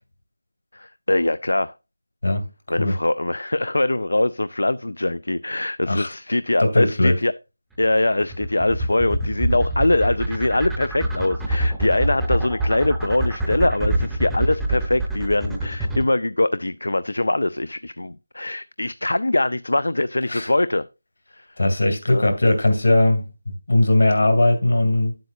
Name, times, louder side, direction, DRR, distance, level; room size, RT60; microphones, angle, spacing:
voice 1, 0.7-1.7 2.7-7.3 7.8-20.9 21.3-21.6 22.1-22.2, left 2 dB, 90° left, 0.4 m, -22 dB
voice 2, 6.6-7.2 20.3-20.5 21.6-25.2, left 1 dB, 75° left, 2.7 m, -19 dB
sound 1, 7.8-16.0, right 1 dB, ahead, 0.6 m, -25 dB
9.4 x 7.7 x 2.5 m
figure-of-eight pair, 175°, 0 cm